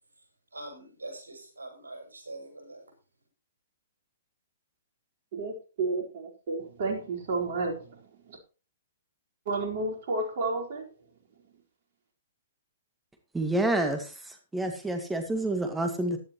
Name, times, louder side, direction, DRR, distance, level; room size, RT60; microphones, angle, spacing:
voice 1, 0.5-2.9, right 2 dB, 80° right, 2 dB, 6.8 m, -43 dB
voice 2, 5.3-8.0 8.3-8.4 9.5-10.9, right 3 dB, 55° right, 0 dB, 4.4 m, -31 dB
voice 3, 13.3-14.1 14.5-16.2, right 1 dB, 5° right, 5 dB, 2.0 m, -28 dB
16.0 x 11.0 x 3.1 m, 0.34 s
figure-of-eight pair, 120°, 0 cm